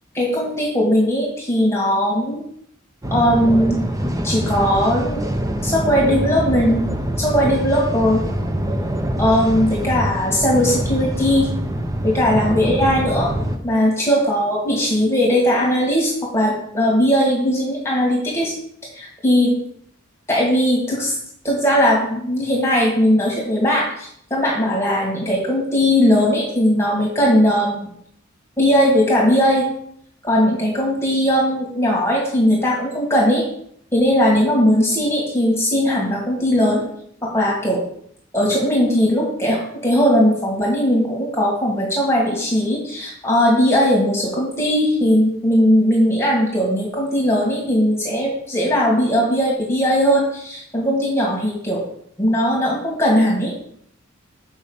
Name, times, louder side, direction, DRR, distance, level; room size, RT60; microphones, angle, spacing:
voice 1, 0.2-2.4 3.1-3.8 4.2-5.2 5.6-6.8 7.2-8.2 9.2-11.5 12.0-13.3 13.6-18.6 18.9-19.6 20.3-21.2 21.4-27.9 28.6-29.7 30.2-33.4 33.9-36.8 37.2-37.8 38.3-51.8 52.2-53.5, equal, 15° left, -3 dB, 1.9 m, -18 dB
sound 1, 3.0-13.6, equal, 15° right, 0.8 m, -24 dB
6.5 x 5.6 x 6.9 m, 0.67 s
head